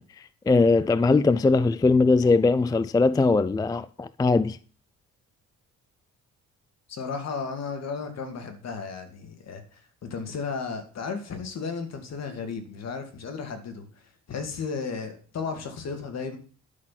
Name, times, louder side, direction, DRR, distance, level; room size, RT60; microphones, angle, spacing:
voice 1, 0.0-4.6, left 3 dB, 15° left, 0.4 m, -21 dB
voice 2, 6.9-16.4, left 5 dB, 60° left, 2.4 m, -34 dB
11.0 x 5.9 x 5.8 m
cardioid pair, 90°, 30 cm